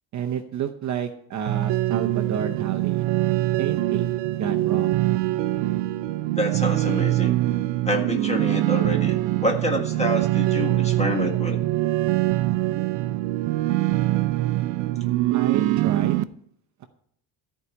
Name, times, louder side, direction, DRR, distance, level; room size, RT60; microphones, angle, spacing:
voice 1, 0.1-3.1 3.6-5.0 15.3-16.2, right 8 dB, 40° right, 4 dB, 0.8 m, -30 dB
sound 1, 1.5-16.2, right 16 dB, 70° right, 0.7 m, -23 dB
voice 2, 6.4-7.3 7.8-11.6, equal, 15° left, 3 dB, 1.6 m, -27 dB
14.0 x 4.8 x 8.4 m, 0.68 s
cardioid pair, 160°, 46 cm